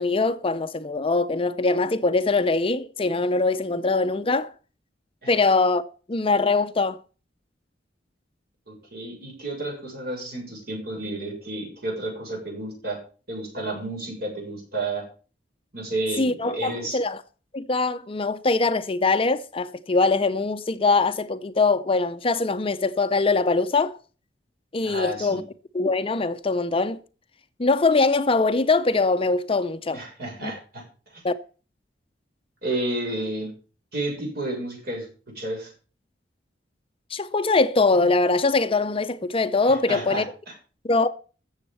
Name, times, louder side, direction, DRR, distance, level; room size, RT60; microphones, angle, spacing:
voice 1, 0.0-4.5 5.3-5.8 6.1-7.0 16.2-17.2 17.5-24.0 24.7-25.4 25.7-27.0 27.6-30.0 30.4-30.5 31.2-31.3 37.1-40.2 40.8-41.1, left 3 dB, 30° left, 0.6 m, -22 dB
voice 2, 8.7-13.0 13.3-15.0 15.7-17.0 24.8-25.4 29.9-30.8 31.1-31.2 32.6-33.5 33.9-35.1 35.4-35.7 39.7-40.5, right 2 dB, 55° right, 6.8 m, -31 dB
14.0 x 7.4 x 7.0 m
head